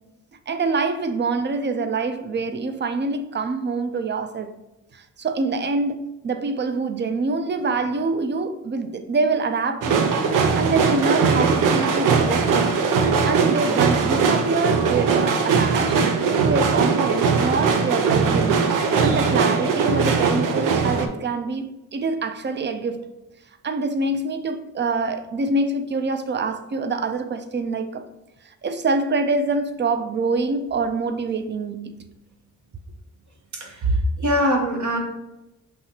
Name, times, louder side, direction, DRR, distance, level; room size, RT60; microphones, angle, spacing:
voice 1, 0.5-4.6 4.9-6.0 6.2-10.1 10.6-12.7 13.3-16.0 16.4-18.6 19.0-23.1 23.6-28.0 28.6-32.0, right 3 dB, 35° right, 0.5 m, -25 dB
sound 1, 9.8-21.1, right 5 dB, 90° right, 0.6 m, -20 dB
voice 2, 33.5-35.0, equal, 65° right, 1.2 m, -22 dB
5.6 x 2.8 x 2.9 m
cardioid pair, 75°, 31 cm